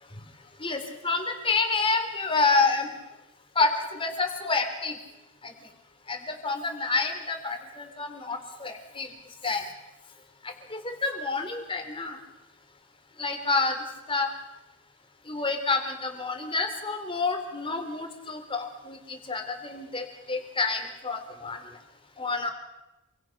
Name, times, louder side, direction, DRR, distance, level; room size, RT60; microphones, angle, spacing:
voice 1, 0.6-2.9 3.5-4.9 5.4-5.5 6.1-9.1 9.4-9.6 10.7-12.2 13.2-13.8 14.1-14.3 15.3-21.6 22.2-22.5, left 3 dB, 25° left, 5 dB, 3.3 m, -28 dB
28.0 x 23.0 x 5.9 m, 0.96 s
head